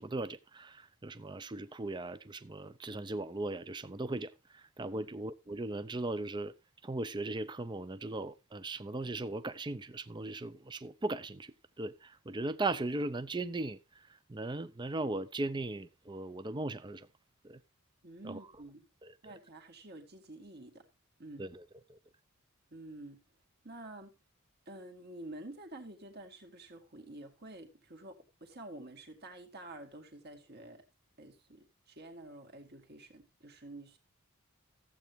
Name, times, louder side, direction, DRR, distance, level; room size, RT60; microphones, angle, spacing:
voice 1, 0.0-6.5 6.8-13.8 14.3-17.1 17.4-17.6 18.2-18.4 21.4-21.6 21.9-22.0, right 2 dB, 20° right, 0.5 m, -38 dB
voice 2, 18.0-18.9 19.2-20.9 21.2-21.5 22.7-23.2 23.6-24.1 24.7-30.8 31.2-34.0, right 1 dB, 45° right, 2.1 m, -49 dB
14.5 x 8.2 x 3.4 m
head